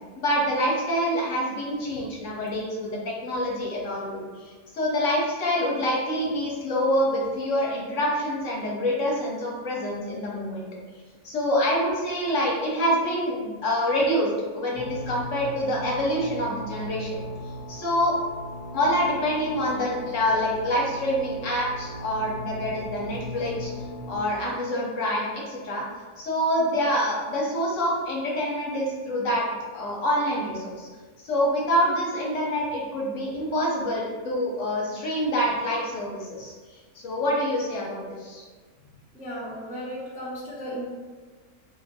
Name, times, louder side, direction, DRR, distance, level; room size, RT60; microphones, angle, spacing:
voice 1, 0.2-10.7 11.2-14.3 14.5-17.2 17.7-18.2 18.7-23.7 24.1-25.8 26.2-29.4 29.7-30.9 31.2-36.5 36.9-38.4, equal, 60° left, -3 dB, 1.0 m, -26 dB
sound 1, 14.8-24.2, left 1 dB, 65° right, 1.4 m, -38 dB
voice 2, 39.1-40.9, equal, 10° right, -7 dB, 0.4 m, -35 dB
3.4 x 2.5 x 3.8 m, 1.4 s
omnidirectional pair, 1.6 m